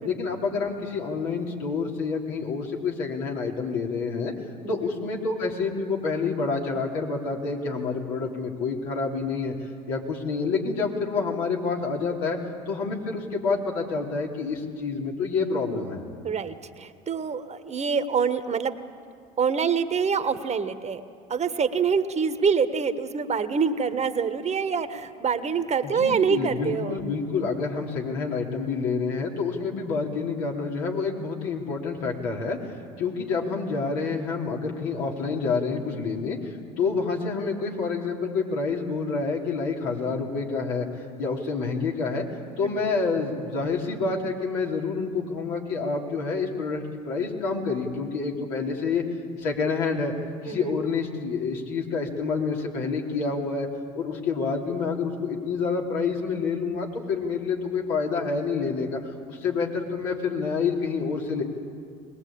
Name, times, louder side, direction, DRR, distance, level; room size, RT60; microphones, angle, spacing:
voice 1, 0.0-4.3 4.7-9.5 9.9-12.4 12.7-16.0 25.8-40.9 41.2-42.3 42.6-49.0 49.4-50.1 50.4-53.7 53.9-61.4, left 4 dB, 75° left, -1 dB, 3.5 m, -28 dB
voice 2, 4.6-4.9 16.2-18.8 19.4-21.0 21.3-27.0 35.7-36.1 42.6-42.9 50.5-50.8, right 6 dB, 35° right, 10 dB, 1.4 m, -26 dB
22.0 x 20.0 x 8.7 m, 2.2 s
hypercardioid pair, 70°, 20 cm